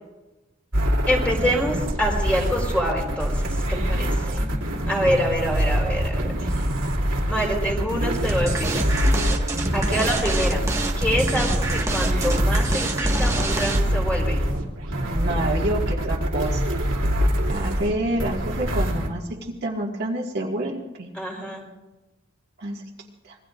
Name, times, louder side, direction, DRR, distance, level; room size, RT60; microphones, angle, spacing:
sound 1, 0.7-19.1, equal, 80° right, 2.6 m, -24 dB
voice 1, 1.1-6.6 7.3-8.9 9.7-10.7 11.0-14.4 17.3-17.5 21.1-21.6, equal, 5° left, -1 dB, 4.4 m, -26 dB
sound 2, 8.3-14.0, right 2 dB, 15° right, 1.7 m, -27 dB
voice 2, 14.9-16.6 17.5-19.2 19.6-21.1 22.6-22.8 23.2-23.4, right 1 dB, 55° right, -2 dB, 2.1 m, -28 dB
26.0 x 21.5 x 2.6 m, 1.1 s
head